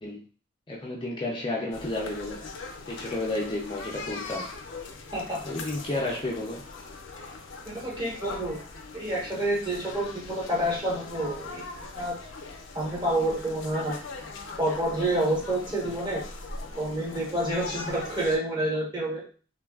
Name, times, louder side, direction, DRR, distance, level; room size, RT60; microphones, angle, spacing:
voice 1, 0.7-2.4 2.9-4.5 5.4-6.7, left 2 dB, 25° left, -3 dB, 0.4 m, -31 dB
sound 1, 1.7-18.4, left 3 dB, 80° left, 0.5 m, -41 dB
voice 2, 7.7-8.6 8.9-12.2 12.7-14.0 14.6-16.2 16.7-19.2, right 1 dB, 25° right, -4 dB, 0.9 m, -28 dB
3.2 x 2.2 x 2.3 m, 0.39 s
head